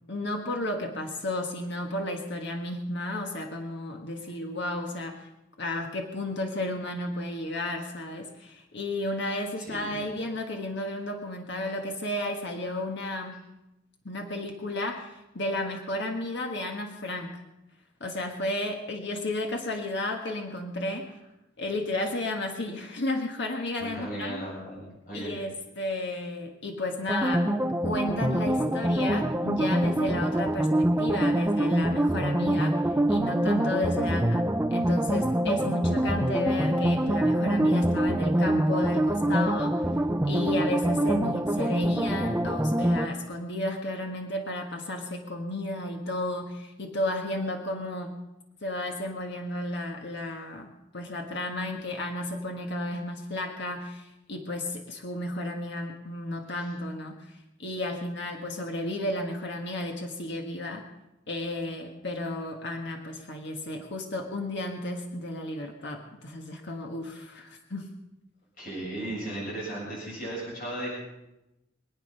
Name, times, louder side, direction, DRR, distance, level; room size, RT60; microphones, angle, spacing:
voice 1, 0.1-5.3 5.6-13.3 14.0-17.4 18.0-21.1 21.6-24.4 25.1-32.8 33.1-39.8 40.3-48.1 48.6-60.8 61.3-67.9, left 1 dB, 60° left, 2 dB, 1.6 m, -33 dB
voice 2, 9.6-10.0 23.8-25.4 68.6-70.9, right 1 dB, 45° left, -5 dB, 7.6 m, -36 dB
sound 1, 27.1-43.1, right 1 dB, 10° right, 0.6 m, -25 dB
25.0 x 9.0 x 5.6 m, 0.94 s
head